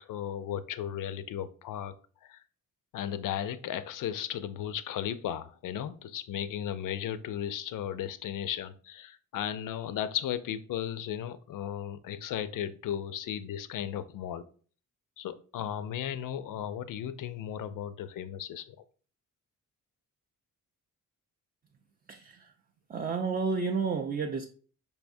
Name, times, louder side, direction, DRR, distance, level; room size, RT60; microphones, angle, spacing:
voice 1, 0.0-1.9 2.2-2.4 2.9-14.5 15.2-18.8, left 10 dB, 70° left, 13 dB, 0.5 m, -35 dB
voice 2, 22.1-22.5 22.9-24.5, right 5 dB, 30° right, 4 dB, 0.4 m, -31 dB
5.4 x 3.5 x 2.6 m, 0.41 s
cardioid pair, 130°, 34 cm